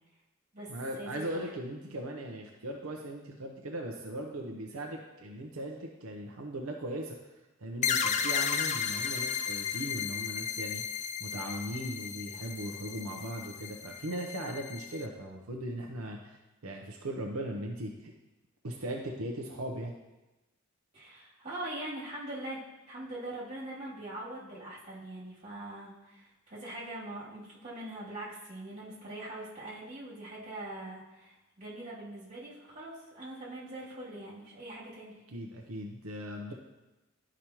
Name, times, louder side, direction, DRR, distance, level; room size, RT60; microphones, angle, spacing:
voice 1, 0.7-7.1 7.6-18.1 18.6-19.9 35.3-36.5, right 1 dB, 85° right, 0 dB, 0.7 m, -39 dB
sound 1, 7.8-15.1, left 7 dB, 35° left, 0.4 m, -34 dB
voice 2, 20.9-22.6 22.9-35.1, right 1 dB, 35° right, -7 dB, 2.6 m, -42 dB
11.0 x 5.0 x 3.0 m, 1.0 s
head